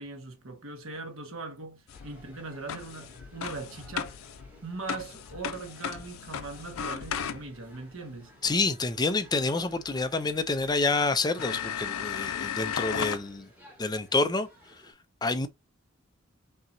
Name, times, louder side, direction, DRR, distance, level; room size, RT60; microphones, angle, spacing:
voice 1, 0.0-4.2 4.6-8.3, right 3 dB, 70° right, 1.4 m, -40 dB
sound 1, 1.9-7.8 9.9-10.0 10.7-10.8 11.4-13.2, left 8 dB, 90° left, 0.5 m, -35 dB
sound 2, 1.9-14.9, equal, 10° right, 1.8 m, -56 dB
voice 2, 8.4-13.5 13.8-14.5 14.8-14.9 15.2-15.5, left 3 dB, 20° left, 0.5 m, -28 dB
5.5 x 2.9 x 2.7 m
head